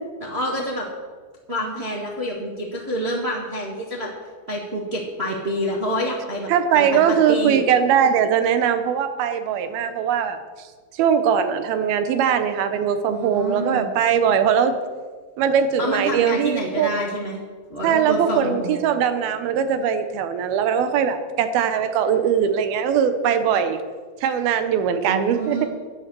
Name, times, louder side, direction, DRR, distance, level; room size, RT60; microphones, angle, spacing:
voice 1, 0.2-0.9 1.5-4.1 4.5-7.6 13.1-13.9 15.8-17.4 17.7-18.8 25.1-25.7, equal, 35° right, -2 dB, 0.9 m, -27 dB
voice 2, 6.5-10.4 11.0-14.7 15.4-16.9 17.8-23.8 24.2-25.6, right 7 dB, 80° right, 9 dB, 2.8 m, -20 dB
11.5 x 10.5 x 6.9 m, 1.5 s
omnidirectional pair, 4.3 m